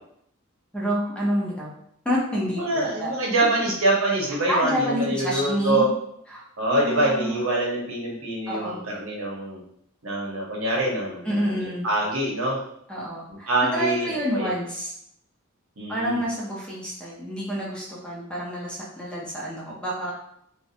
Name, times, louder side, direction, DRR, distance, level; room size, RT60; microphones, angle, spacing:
voice 1, 0.7-1.7 2.0-3.1 4.5-5.8 6.3-6.4 6.7-7.4 8.5-8.8 11.2-11.9 12.9-14.9 15.9-20.1, equal, 5° left, -5 dB, 0.5 m, -28 dB
voice 2, 2.5-5.9 6.6-9.6 10.0-12.6 13.5-14.5 15.8-16.2, right 1 dB, 75° right, -3 dB, 0.8 m, -25 dB
2.5 x 2.1 x 2.7 m, 0.73 s
head